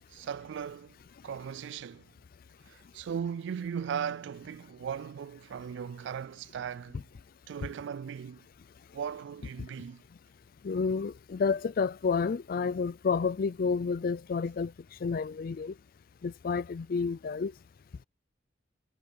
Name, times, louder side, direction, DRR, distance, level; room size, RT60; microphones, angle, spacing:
voice 1, 0.1-1.0 1.2-2.0 2.7-7.0 7.5-8.4 8.9-10.0, right 7 dB, 65° right, 0.3 m, -37 dB
voice 2, 10.6-15.7 16.2-17.5, left 5 dB, 50° left, 0.4 m, -30 dB
head